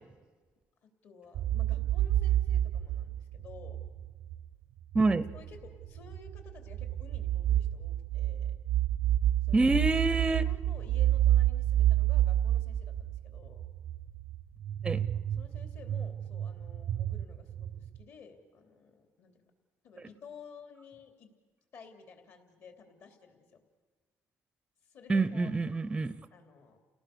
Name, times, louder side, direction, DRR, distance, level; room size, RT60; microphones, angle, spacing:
voice 1, 1.0-3.8 5.3-8.5 9.4-9.8 10.1-10.2 10.4-13.7 15.1-19.4 19.8-21.3 21.7-23.6 24.9-25.8 26.3-26.8, left 5 dB, 55° left, 5 dB, 3.2 m, -53 dB
sound 1, 1.3-4.4 4.9-18.0, right 12 dB, 65° right, 0.6 m, -29 dB
voice 2, 4.9-5.3 9.5-10.5 14.8-15.0 25.1-26.1, right 3 dB, 15° right, 15 dB, 0.6 m, -27 dB
29.5 x 18.0 x 6.8 m, 1.4 s
cardioid pair, 140°, 5 cm